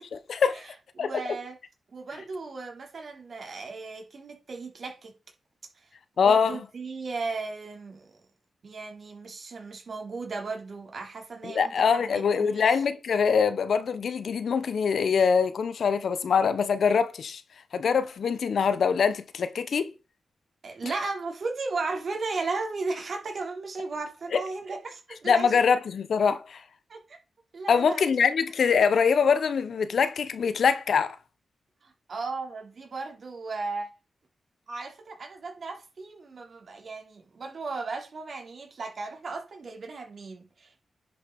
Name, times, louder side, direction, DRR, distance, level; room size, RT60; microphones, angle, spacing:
voice 1, 0.1-0.6 1.0-1.1 6.2-6.6 11.4-17.4 17.7-19.9 24.3-24.4 25.2-26.6 27.7-31.2, left 6 dB, 75° left, 0.9 m, -24 dB
voice 2, 1.0-1.6 1.9-5.1 6.2-8.2 8.6-12.8 20.6-25.7 26.9-27.2 27.5-28.0 31.8-33.9 34.7-40.9, right 3 dB, 55° right, 3.2 m, -36 dB
10.5 x 5.3 x 5.2 m
wide cardioid pair, 105°, 0 cm